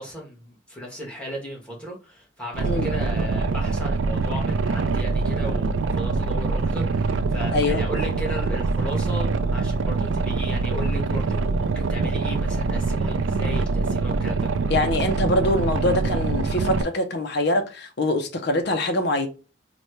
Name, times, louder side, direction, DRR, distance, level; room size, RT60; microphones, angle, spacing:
voice 1, 0.0-14.7, equal, 5° left, 1.2 m, -36 dB
Boat Water vehicle, 2.5-16.8, right 4 dB, 85° right, 0.4 m, -24 dB
voice 2, 7.5-7.8 14.7-19.3, left 1 dB, 60° left, 0.6 m, -24 dB
4.1 x 2.2 x 3.1 m
head